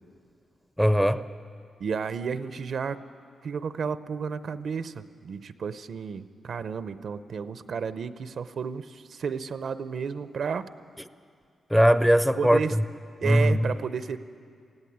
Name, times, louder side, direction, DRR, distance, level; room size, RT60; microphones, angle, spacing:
voice 1, 0.8-1.2 11.7-12.8 13.2-13.7, equal, ahead, 0.5 m, -20 dB
voice 2, 1.8-3.0 3.4-10.7 12.4-12.7 13.2-14.2, right 6 dB, 65° right, 0.6 m, -32 dB
18.5 x 15.5 x 9.4 m
cardioid pair, 105°, 0 cm